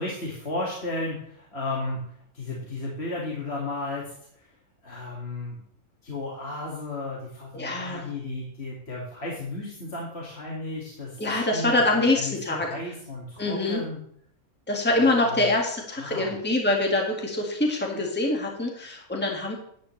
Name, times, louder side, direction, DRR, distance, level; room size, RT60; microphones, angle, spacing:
voice 1, 0.0-4.5 4.8-5.6 6.0-11.2 11.5-14.0 14.9-15.5 16.0-16.3, left 2 dB, 45° left, -3 dB, 2.4 m, -34 dB
voice 2, 7.5-8.1 11.2-12.7 13.4-13.8 14.7-19.5, left 2 dB, 5° left, 0 dB, 1.8 m, -25 dB
12.5 x 10.5 x 3.2 m, 0.65 s
omnidirectional pair, 1.5 m